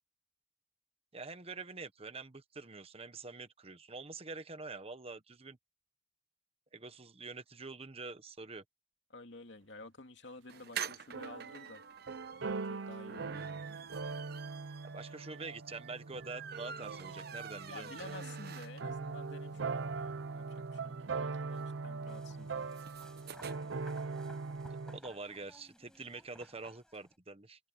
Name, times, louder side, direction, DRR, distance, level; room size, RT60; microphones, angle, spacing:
voice 1, 1.1-5.6 6.7-8.6 14.8-17.9 24.7-27.7, right 3 dB, 30° right, 1.1 m, -46 dB
voice 2, 9.1-11.8 12.6-13.6 17.7-22.7, left 2 dB, 65° left, 2.7 m, -52 dB
Door Squeaking, 10.5-19.1 19.5-19.6 19.8-19.9 20.1-23.5, right 7 dB, 55° right, 1.0 m, -47 dB
sound 1, 10.6-10.7 11.1-25.0, right 4 dB, 75° right, 0.6 m, -41 dB
sound 2, 22.1-27.2, equal, 5° left, 5.3 m, -59 dB
head